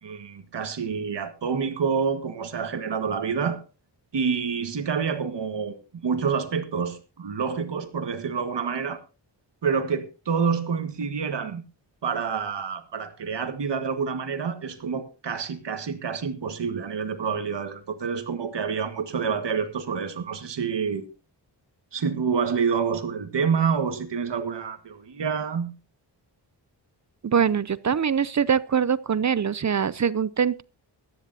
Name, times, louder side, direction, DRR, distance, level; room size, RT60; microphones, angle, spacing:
voice 1, 0.0-3.6 4.1-9.0 9.6-11.6 12.0-21.1 21.9-25.7, right 6 dB, 70° right, 1.8 m, -28 dB
voice 2, 27.2-30.6, right 7 dB, 40° right, 0.6 m, -23 dB
18.5 x 13.5 x 2.8 m
wide cardioid pair, 95°, 43 cm